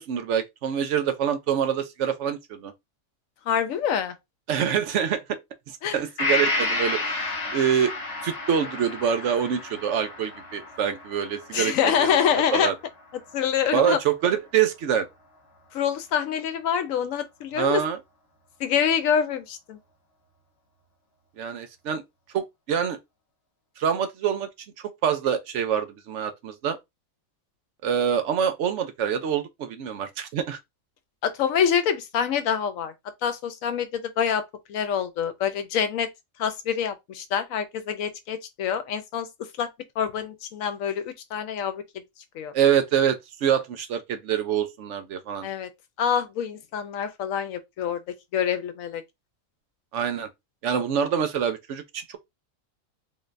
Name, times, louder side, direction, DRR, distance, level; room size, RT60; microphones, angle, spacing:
voice 1, 0.0-2.7 4.5-5.2 5.7-7.9 8.2-12.2 12.5-12.7 13.7-15.1 17.6-18.0 21.4-22.0 22.3-23.0 23.8-24.5 25.0-26.8 27.8-30.6 42.5-45.5 49.9-50.3 50.6-52.2, right 8 dB, 65° right, 0.9 m, -25 dB
voice 2, 3.5-4.1 5.8-6.0 11.5-12.7 13.3-14.0 15.7-17.8 18.6-19.8 31.2-32.9 33.2-34.4 34.7-36.1 36.4-39.3 39.6-39.7 40.0-41.8 42.3-42.5 45.4-45.7 46.0-48.0 48.3-49.0, left 8 dB, 80° left, 1.0 m, -26 dB
Gong, 6.2-13.8 14.2-14.3, left 2 dB, 50° left, 1.2 m, -31 dB
3.8 x 3.2 x 2.5 m
omnidirectional pair, 1.4 m